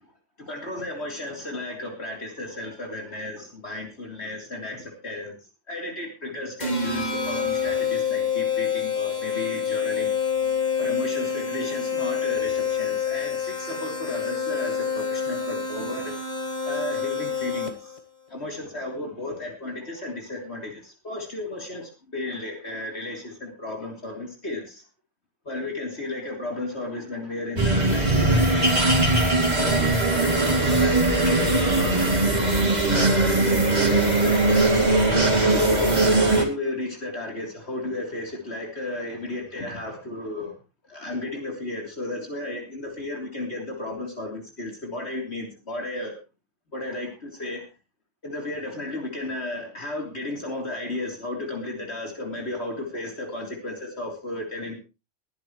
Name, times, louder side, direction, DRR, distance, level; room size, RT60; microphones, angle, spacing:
voice 1, 0.4-3.4 3.6-5.4 5.7-10.1 10.8-16.1 16.7-17.7 18.3-24.8 25.5-28.5 29.5-35.0 35.5-40.5 40.9-46.1 46.7-47.6 48.2-54.8, left 2 dB, 60° left, 1 dB, 3.7 m, -33 dB
sound 1, 6.6-18.0, left 6 dB, 35° left, 1.9 m, -27 dB
sound 2, 27.6-36.4, right 2 dB, 35° right, 2.9 m, -20 dB
21.5 x 11.0 x 3.1 m, 0.30 s
omnidirectional pair, 1.3 m